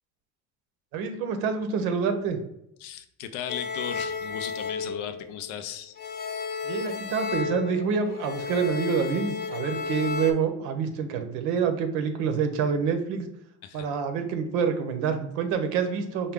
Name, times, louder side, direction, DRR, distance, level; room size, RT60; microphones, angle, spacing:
voice 1, 0.9-2.4 6.6-13.3 13.7-16.3, right 6 dB, 85° right, 6 dB, 0.7 m, -27 dB
voice 2, 2.8-6.0 13.6-13.9, left 10 dB, 90° left, 9 dB, 0.5 m, -36 dB
sound 1, 3.5-5.6 6.0-10.3, left 5 dB, 30° left, 0.6 m, -33 dB
4.6 x 2.2 x 3.5 m, 0.78 s
supercardioid pair, 100°, 31 cm